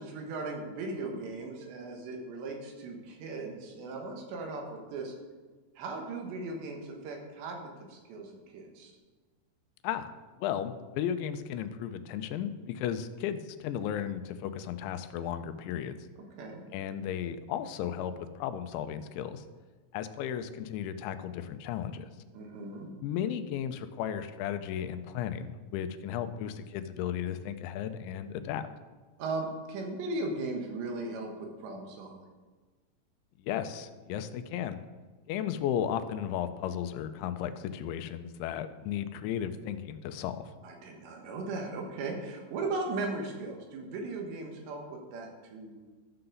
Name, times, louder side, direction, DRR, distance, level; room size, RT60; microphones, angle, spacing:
voice 1, 0.0-5.1 5.8-8.9 16.4-16.7 22.3-22.9 29.2-32.2 40.6-45.8, right 3 dB, 75° right, 1 dB, 3.4 m, -37 dB
voice 2, 10.4-16.0 16.7-19.4 19.9-22.1 23.0-28.6 33.4-34.8 35.3-40.5, left 9 dB, 90° left, 10 dB, 3.0 m, -35 dB
13.5 x 6.7 x 3.9 m, 1.3 s
omnidirectional pair, 5.2 m